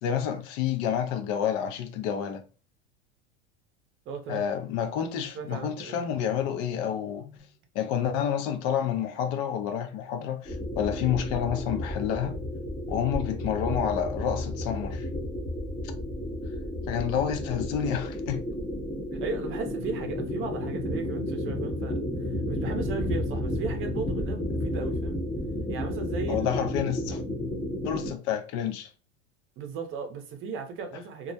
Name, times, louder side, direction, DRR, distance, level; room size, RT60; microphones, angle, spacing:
voice 1, 0.0-2.4 4.3-7.4 7.7-12.3 12.9-15.1 16.9-18.4 26.3-27.2 27.8-28.9, left 9 dB, 60° left, 0.6 m, -29 dB
voice 2, 4.1-4.4 5.3-6.0 19.1-22.0 22.5-25.2 25.7-26.5 29.6-31.3, right 5 dB, 40° right, 0.6 m, -36 dB
sound 1, 10.5-28.1, left 1 dB, 15° left, 0.7 m, -32 dB
2.3 x 2.0 x 2.6 m
supercardioid pair, 115°, 33 cm